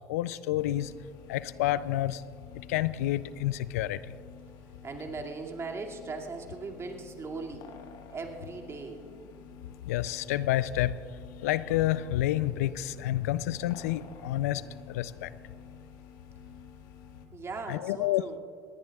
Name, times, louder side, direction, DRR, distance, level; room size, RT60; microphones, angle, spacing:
voice 1, 0.1-0.9 1.3-2.2 2.6-4.1 9.9-11.0 11.4-14.6 14.9-15.3 17.7-18.2, left 14 dB, 80° left, 16 dB, 0.4 m, -29 dB
sound 1, 0.6-17.3, left 6 dB, 65° left, 1.4 m, -51 dB
voice 2, 4.8-7.7 8.1-9.0 17.3-18.4, right 4 dB, 35° right, 1 dB, 2.2 m, -39 dB
20.5 x 18.5 x 2.3 m, 2.3 s
hypercardioid pair, 70°, 8 cm